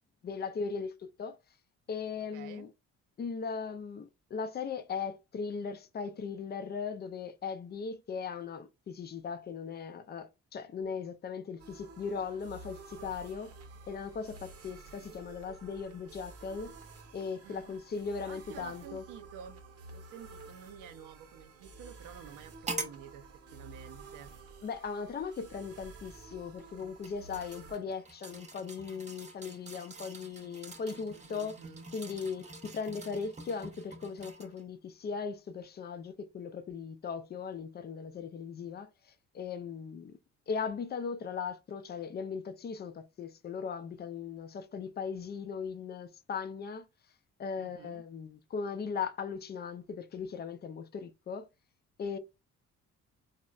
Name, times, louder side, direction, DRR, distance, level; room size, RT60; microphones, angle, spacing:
voice 1, 0.2-1.4 1.9-2.7 3.2-13.5 13.9-16.7 17.1-19.0 24.6-31.6 31.9-38.9 39.3-40.2 40.5-46.8 47.4-51.5 52.0-52.2, left 5 dB, 35° left, 0.4 m, -38 dB
voice 2, 2.3-2.7 17.4-17.8 18.2-19.6 19.9-24.3 30.9-31.8 47.6-48.0, right 8 dB, 90° right, 0.6 m, -50 dB
sound 1, 11.6-27.8, right 4 dB, 55° right, 0.8 m, -51 dB
sound 2, 22.7-23.0 24.0-24.1 26.6-34.6 35.1-35.2, right 3 dB, 25° right, 0.7 m, -45 dB
4.1 x 2.0 x 2.3 m
cardioid pair, 90°, 30 cm